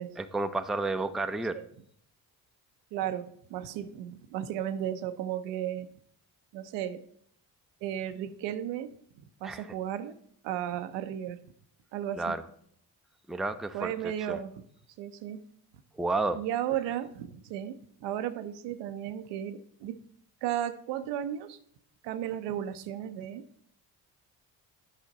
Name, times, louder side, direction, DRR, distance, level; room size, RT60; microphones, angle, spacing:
voice 1, 0.0-1.6 9.4-9.6 12.2-12.4 13.3-14.4 15.9-16.4, right 3 dB, ahead, 9 dB, 0.4 m, -31 dB
voice 2, 2.9-5.9 6.5-7.0 7.8-8.9 9.2-10.1 10.4-11.4 11.9-12.4 13.7-14.5 15.0-15.4 16.3-20.0 20.4-21.6 22.0-23.4, right 11 dB, 90° right, 10 dB, 0.6 m, -34 dB
8.2 x 5.0 x 4.0 m, 0.65 s
supercardioid pair, 65°, 41 cm